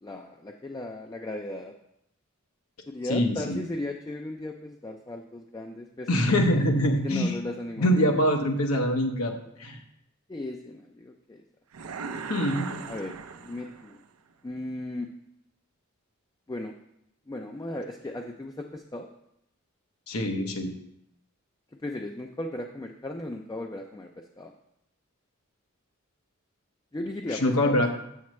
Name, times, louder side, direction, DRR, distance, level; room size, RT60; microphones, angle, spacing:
voice 1, 0.0-1.7 2.9-6.1 7.0-8.1 10.3-11.4 12.9-14.0 14.4-15.1 16.5-16.7 17.3-19.1 21.8-24.5 26.9-27.8, left 1 dB, 15° left, 3 dB, 0.4 m, -36 dB
voice 2, 3.1-3.6 6.1-7.4 7.8-9.3 9.6-9.8 12.3-12.7 20.1-20.7 27.3-27.9, equal, 90° left, 3 dB, 1.1 m, -24 dB
sound 1, 11.7-14.1, right 5 dB, 85° right, 0.5 m, -38 dB
7.5 x 7.2 x 3.1 m, 0.79 s
head